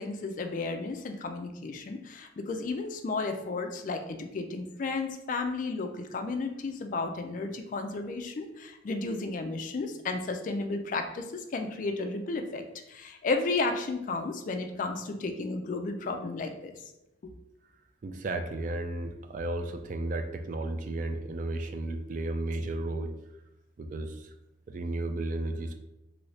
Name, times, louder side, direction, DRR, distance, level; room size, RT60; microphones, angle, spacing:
voice 1, 0.0-16.9 17.2-17.3, left 3 dB, 45° left, 6 dB, 0.3 m, -33 dB
voice 2, 18.0-23.1 23.8-24.3 24.7-25.7, right 2 dB, 45° right, 6 dB, 0.3 m, -33 dB
2.7 x 2.6 x 3.2 m, 0.91 s
head